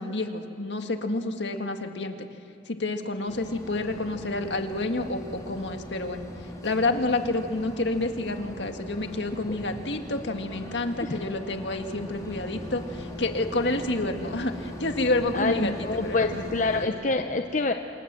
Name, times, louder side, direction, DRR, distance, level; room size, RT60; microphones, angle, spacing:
voice 1, 0.0-2.2 2.7-6.3 6.6-16.5, left 2 dB, 75° left, 5 dB, 1.8 m, -29 dB
sound 1, 3.3-16.9, left 1 dB, 20° left, 3.6 m, -40 dB
voice 2, 15.3-17.7, left 3 dB, 45° left, 5 dB, 0.8 m, -26 dB
27.5 x 27.0 x 7.5 m, 2.8 s
head